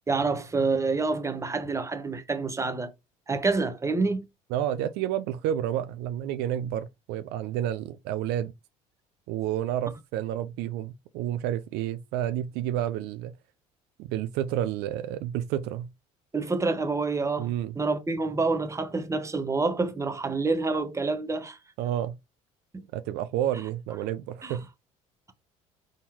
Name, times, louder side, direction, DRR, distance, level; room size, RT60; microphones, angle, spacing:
voice 1, 0.1-2.9 3.3-4.2 16.3-21.6 24.4-24.6, right 3 dB, 15° right, 1.0 m, -27 dB
voice 2, 4.5-8.5 9.3-13.3 14.0-15.9 17.4-17.7 21.8-22.2 22.9-24.7, right 11 dB, 70° right, 0.5 m, -30 dB
4.2 x 3.8 x 2.8 m
hypercardioid pair, 70°, 18 cm